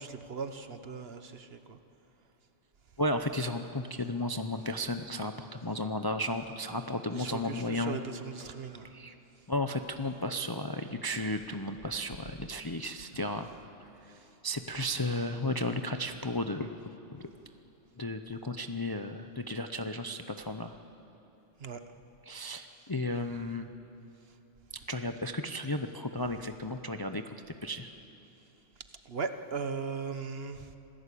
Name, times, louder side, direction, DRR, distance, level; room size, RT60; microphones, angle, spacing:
voice 1, 0.0-1.8 7.1-8.9 21.6-21.8 29.1-30.7, right 5 dB, 55° right, 9 dB, 1.2 m, -38 dB
voice 2, 3.0-8.0 8.6-9.2 9.5-13.5 14.0-14.2 14.4-16.8 17.1-17.3 18.0-20.7 22.2-23.7 24.9-27.3 27.6-27.9, left 1 dB, 25° left, 7 dB, 0.5 m, -34 dB
26.5 x 16.0 x 8.5 m, 3.0 s
omnidirectional pair, 1.3 m